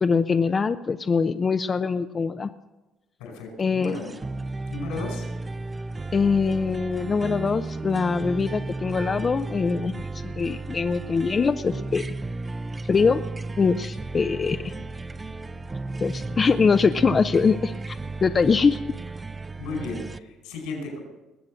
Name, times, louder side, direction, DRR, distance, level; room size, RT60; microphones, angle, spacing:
voice 1, 0.0-2.5 3.6-4.0 6.1-12.0 12.8-13.2 13.6-14.7 16.0-18.8, left 5 dB, 35° left, 9 dB, 0.5 m, -23 dB
voice 2, 3.2-4.3 4.7-5.2 19.6-21.0, left 3 dB, 85° left, 2 dB, 4.9 m, -34 dB
sound 1, 3.8-20.2, right 3 dB, 25° right, 0.5 m, -34 dB
20.0 x 7.6 x 6.3 m, 1.1 s
supercardioid pair, 70°, 0 cm